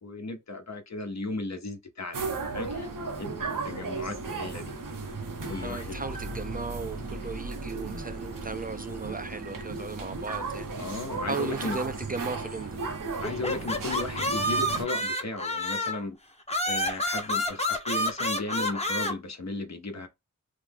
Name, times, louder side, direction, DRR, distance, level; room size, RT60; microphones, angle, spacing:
voice 1, 0.0-2.9 3.2-3.3 3.6-4.7 5.5-6.0 10.8-11.8 13.2-16.2 16.7-20.1, left 2 dB, 60° left, 0.8 m, -35 dB
sound 1, 2.1-14.8, right 3 dB, 90° right, 0.7 m, -35 dB
voice 2, 5.6-10.7 11.3-12.8, right 4 dB, 30° right, 0.3 m, -36 dB
sound 2, 13.2-16.1 16.5-19.1, left 1 dB, 20° left, 0.8 m, -29 dB
3.2 x 2.0 x 3.4 m
cardioid pair, 40°, 31 cm